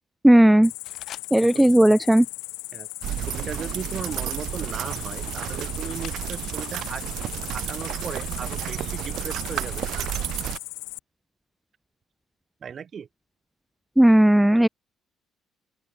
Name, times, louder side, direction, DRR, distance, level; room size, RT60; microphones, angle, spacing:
voice 1, 0.2-0.7 1.3-2.3 14.0-14.7, right 1 dB, 5° right, 1.8 m, -15 dB
Cricket, 0.6-11.0, left 28 dB, 90° left, 1.8 m, -38 dB
sound 1, 0.8-1.8 2.0-2.4 2.9-6.7 7.0-8.5, left 10 dB, 65° left, 7.6 m, -50 dB
voice 2, 1.5-1.9 2.7-2.9 3.2-7.1 7.5-9.8 12.6-13.1, right 7 dB, 50° right, 7.2 m, -37 dB
sound 2, 3.0-10.6, right 13 dB, 70° right, 0.9 m, -31 dB
open air
supercardioid pair, 70°, 0 cm